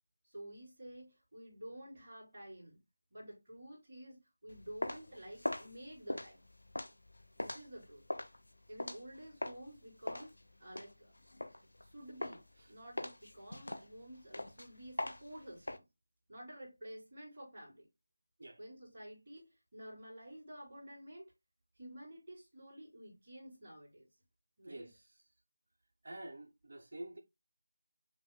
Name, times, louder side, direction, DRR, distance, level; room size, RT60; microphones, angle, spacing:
voice 1, 0.2-2.8 3.1-6.4 7.4-8.0 8.7-10.3 10.6-11.1 11.8-15.8 16.3-17.8 18.6-21.3 21.7-24.1 24.6-24.9, right 1 dB, 15° right, 3.0 m, -51 dB
sound 1, 4.5-9.7 10.1-11.9 12.2-12.6 13.0-15.8, left 1 dB, 85° left, 0.8 m, -41 dB
voice 2, 24.6-25.1 26.0-27.2, right 1 dB, 45° right, 0.9 m, -48 dB
6.0 x 3.0 x 2.2 m
figure-of-eight pair, 175°, 0 cm